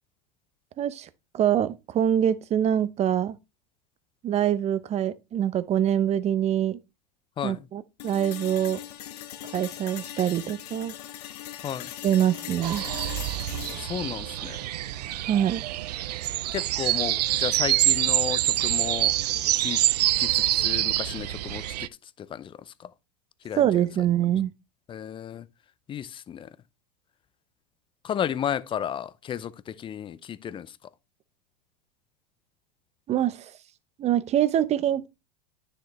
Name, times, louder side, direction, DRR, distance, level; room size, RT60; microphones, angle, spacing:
voice 1, 0.8-3.4 4.2-6.8 7.4-8.8 9.5-10.9 12.0-12.9 15.3-15.6 23.6-24.5 33.1-33.5 34.0-35.1, right 10 dB, 30° right, 0.8 m, -24 dB
sound 1, 8.0-16.0, left 12 dB, 70° left, 1.4 m, -41 dB
sound 2, 12.6-21.9, right 15 dB, 75° right, 0.5 m, -26 dB
voice 2, 13.7-14.6 16.5-19.1 19.6-19.8 20.2-21.9 22.2-22.5 23.4-23.8 24.9-25.4 25.9-26.5 28.0-30.7, left 9 dB, 25° left, 0.7 m, -33 dB
9.7 x 6.6 x 3.2 m
hypercardioid pair, 100°, 21 cm